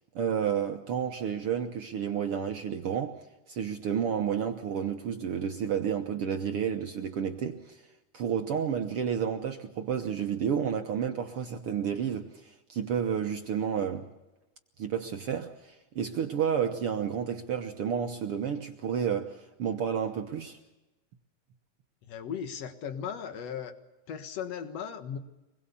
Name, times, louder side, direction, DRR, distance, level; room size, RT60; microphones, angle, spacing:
voice 1, 0.1-7.8 8.1-14.1 14.8-20.6, right 8 dB, 65° right, 1.4 m, -31 dB
voice 2, 22.1-23.7 24.1-25.2, left 8 dB, 55° left, 2.5 m, -37 dB
26.0 x 21.0 x 7.0 m
omnidirectional pair, 3.8 m